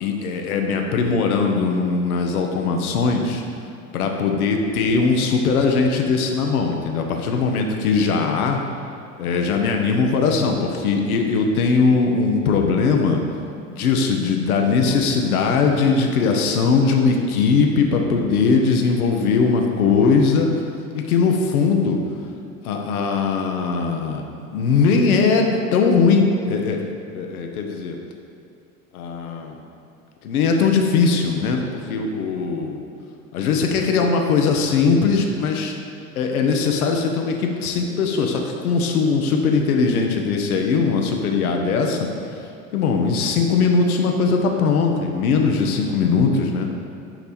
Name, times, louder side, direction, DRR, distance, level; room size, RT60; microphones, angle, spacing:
voice 1, 0.0-3.4 3.9-8.6 9.2-13.2 13.7-20.6 20.9-22.0 22.6-26.8 27.1-28.0 28.9-29.6 30.2-31.6 31.9-32.9 33.3-35.7 36.2-42.1 42.7-46.7, left 4 dB, 80° left, 3 dB, 0.8 m, -20 dB
8.6 x 3.3 x 4.2 m, 2.6 s
hypercardioid pair, 70°, 43 cm